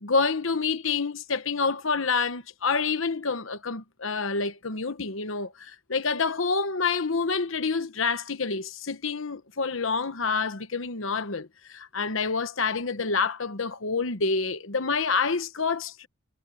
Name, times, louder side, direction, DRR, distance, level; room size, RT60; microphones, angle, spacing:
voice 1, 0.0-16.1, left 4 dB, 70° left, 1.1 m, -28 dB
head